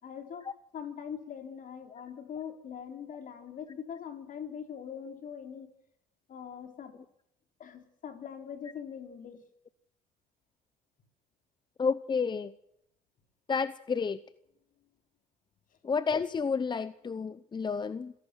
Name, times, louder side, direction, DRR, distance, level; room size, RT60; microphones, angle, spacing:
voice 1, 0.0-5.7 6.3-7.0 7.6-9.4, left 8 dB, 50° left, 7 dB, 4.0 m, -42 dB
voice 2, 11.8-12.5 13.5-14.2 15.8-18.1, left 5 dB, 25° left, 15 dB, 0.8 m, -30 dB
26.5 x 17.5 x 6.3 m, 0.78 s
cardioid pair, 110°, 17 cm